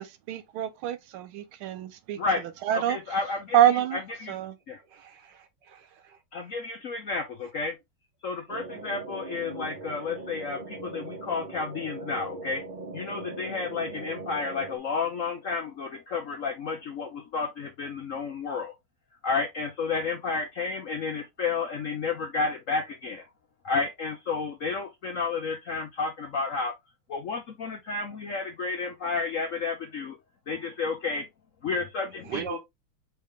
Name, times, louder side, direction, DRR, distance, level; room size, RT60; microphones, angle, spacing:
voice 1, 0.3-2.2 2.6-3.0 3.5-4.0 4.3-4.5, right 11 dB, 80° right, 1.6 m, -25 dB
voice 2, 2.7-4.3 4.7-4.8 6.3-7.7 8.2-12.6 12.9-18.7 19.2-23.2 23.6-26.7 27.1-30.2 30.5-31.3 31.6-32.6, left 4 dB, 75° left, 0.7 m, -31 dB
voice 3, 4.9-6.2 32.2-32.6, right 7 dB, 60° right, 1.5 m, -39 dB
sound 1, 8.5-14.8, right 2 dB, 45° right, 0.6 m, -40 dB
4.7 x 3.4 x 3.3 m
omnidirectional pair, 2.3 m